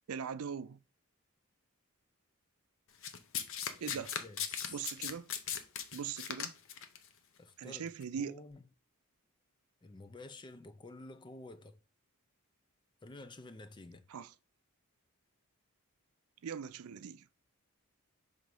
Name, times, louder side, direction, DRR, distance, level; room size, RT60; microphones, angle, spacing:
voice 1, 0.1-0.8 3.8-4.1 4.7-5.3 5.9-6.5 7.6-8.4 14.1-14.3 16.4-17.2, right 7 dB, 80° right, 0.4 m, -40 dB
Domestic sounds home sounds, 3.0-7.0 7.9-8.0, left 8 dB, 65° left, 0.7 m, -38 dB
voice 2, 3.9-4.9 7.4-7.9 8.2-8.7 9.8-11.8 13.0-14.0, left 2 dB, 20° left, 0.4 m, -50 dB
5.3 x 3.8 x 4.7 m
head